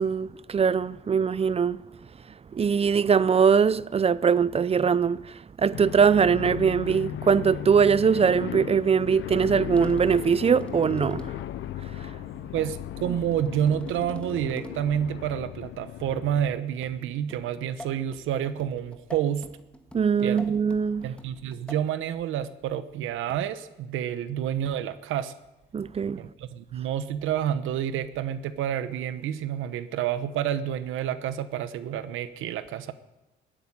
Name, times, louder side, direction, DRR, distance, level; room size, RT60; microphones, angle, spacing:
voice 1, 0.0-1.8 2.5-11.3 12.0-12.1 19.9-21.1 25.7-26.2, right 6 dB, 30° right, 0.5 m, -22 dB
sound 1, 5.7-16.6, left 13 dB, 75° left, 0.5 m, -36 dB
sound 2, 9.8-11.6 13.0-15.0 16.8-22.0 23.3-23.7 24.7-25.0, equal, 5° left, 1.8 m, -45 dB
voice 2, 12.5-19.4 20.2-20.4 21.0-25.3 26.2-32.9, right 10 dB, 85° right, 1.0 m, -29 dB
14.0 x 8.9 x 9.9 m
cardioid pair, 90°, 20 cm